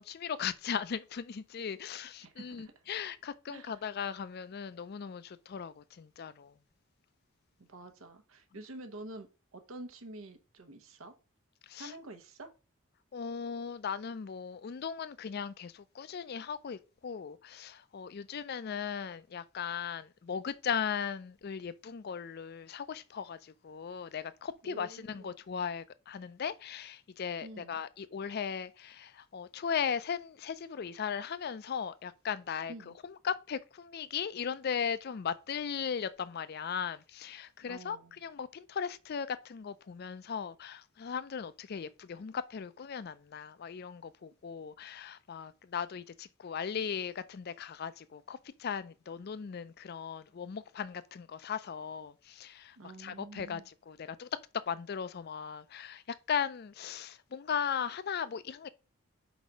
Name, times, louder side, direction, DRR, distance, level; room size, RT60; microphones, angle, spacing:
voice 1, 0.0-6.5 11.6-11.9 13.1-54.3 54.5-58.7, left 7 dB, 50° left, 0.4 m, -38 dB
voice 2, 2.2-2.7 3.5-3.8 7.6-11.1 11.8-12.5 24.6-25.4 27.4-27.8 32.7-33.0 37.6-38.2 52.8-53.7, right 2 dB, 75° right, 0.9 m, -48 dB
4.6 x 4.0 x 5.1 m
head